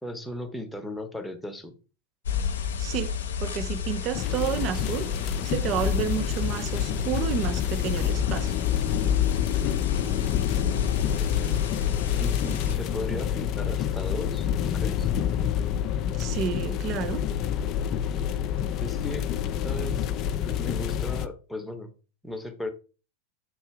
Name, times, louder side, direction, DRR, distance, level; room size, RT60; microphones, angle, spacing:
voice 1, 0.0-1.7 11.1-11.5 12.2-15.1 18.8-19.4 19.6-20.1 20.4-21.9 22.2-22.7, left 1 dB, 5° left, 0.9 m, -36 dB
sound 1, 2.3-12.8, left 8 dB, 60° left, 0.7 m, -30 dB
voice 2, 2.8-3.1 3.4-5.1 5.4-8.5 16.1-17.2, right 9 dB, 35° right, 0.5 m, -30 dB
sound 2, 4.1-21.3, left 9 dB, 35° left, 0.4 m, -28 dB
7.6 x 2.7 x 4.7 m
figure-of-eight pair, 90°, 0 cm